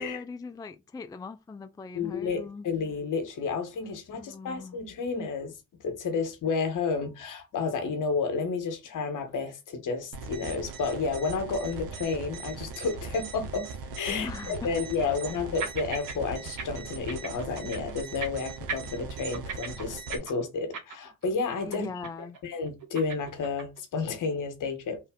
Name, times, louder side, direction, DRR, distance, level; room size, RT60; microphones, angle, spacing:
voice 1, 0.0-2.6 4.1-4.8 14.1-14.7 15.2-15.3 21.6-22.4, left 4 dB, 10° left, 0.4 m, -40 dB
voice 2, 1.9-5.5 5.8-13.7 13.9-21.9 22.4-25.0, left 4 dB, 60° left, 1.2 m, -31 dB
sound 1, 9.4-9.6 9.9-10.0 10.6-10.7 13.9-14.0 14.7-15.4 15.6-16.2 16.4-16.6 16.9-17.9 18.2-18.4 18.7-21.3 21.6-21.8 22.0-22.4 22.6-23.8, right 5 dB, 60° right, 1.4 m, -38 dB
sound 2, 10.1-20.2, right 4 dB, 80° right, 0.8 m, -40 dB
3.2 x 2.7 x 3.6 m
hypercardioid pair, 50°, 35 cm